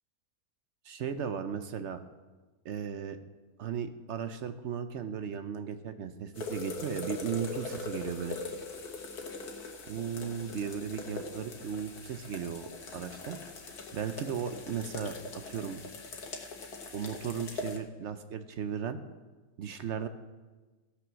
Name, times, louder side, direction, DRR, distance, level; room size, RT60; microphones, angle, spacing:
voice 1, 0.8-2.0 2.6-3.2 3.6-8.4 9.9-15.2 15.5-15.8 16.9-19.0 19.6-20.1, right 7 dB, 60° right, 10 dB, 0.8 m, -36 dB
sound 1, 6.3-17.8, left 3 dB, 85° left, 1.8 m, -41 dB
15.0 x 6.0 x 6.2 m, 1.3 s
omnidirectional pair, 1.6 m